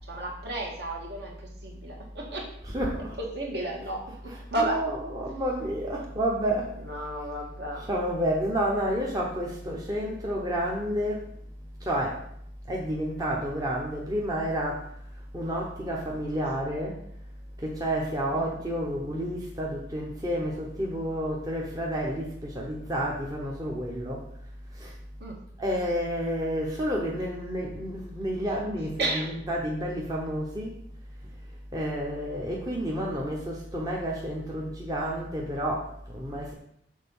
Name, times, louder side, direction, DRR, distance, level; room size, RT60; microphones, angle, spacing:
voice 1, 0.1-2.5 3.2-4.8 6.8-7.9 18.3-18.6 25.2-25.4 29.0-29.3, right 2 dB, 60° right, -1 dB, 1.5 m, -33 dB
voice 2, 2.6-3.1 4.3-6.7 7.9-11.2 11.8-12.2 12.7-14.8 15.3-17.0 17.6-24.2 24.8-24.9 25.6-30.7 31.7-36.5, equal, 20° right, -2 dB, 0.8 m, -30 dB
6.5 x 3.8 x 5.4 m, 0.70 s
head